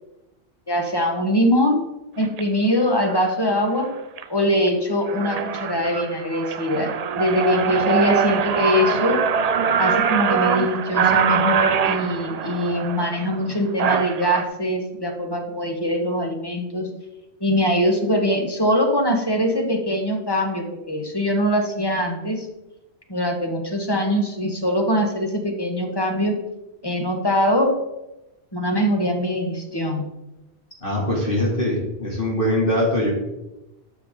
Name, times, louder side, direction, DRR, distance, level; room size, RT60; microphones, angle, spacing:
voice 1, 0.7-1.8 2.2-3.9 4.3-9.2 9.8-16.9 17.4-22.5 23.1-26.4 26.8-27.8 28.5-30.1, equal, 20° left, 3 dB, 1.2 m, -22 dB
sound 1, 2.2-2.4 3.1-3.3 3.8-4.2 4.7-4.8 5.0-14.4, right 7 dB, 55° right, 0.4 m, -23 dB
voice 2, 30.8-33.1, left 1 dB, 50° left, -4 dB, 2.7 m, -22 dB
11.5 x 6.9 x 3.7 m, 0.96 s
omnidirectional pair, 1.1 m